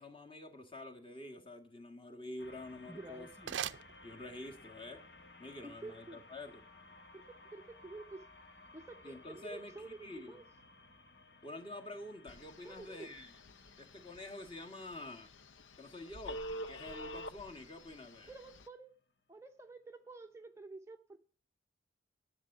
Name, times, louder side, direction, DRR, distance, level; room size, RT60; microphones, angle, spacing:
voice 1, 0.0-3.6 4.0-5.0 5.4-6.7 9.0-10.3 11.4-13.4 13.8-15.3 15.8-18.3, left 2 dB, 25° left, 1.7 m, -48 dB
sound 1, 2.4-18.9, left 2 dB, 55° left, 1.4 m, -59 dB
sound 2, 2.7-4.7, right 9 dB, 65° right, 0.5 m, -44 dB
voice 2, 2.9-3.6 5.6-6.2 7.1-8.2 8.7-10.4 12.6-13.1 18.3-19.0 19.3-21.2, right 2 dB, 15° right, 0.6 m, -50 dB
Telephone, 12.3-18.7, equal, 75° left, 0.6 m, -48 dB
11.0 x 7.5 x 6.7 m
head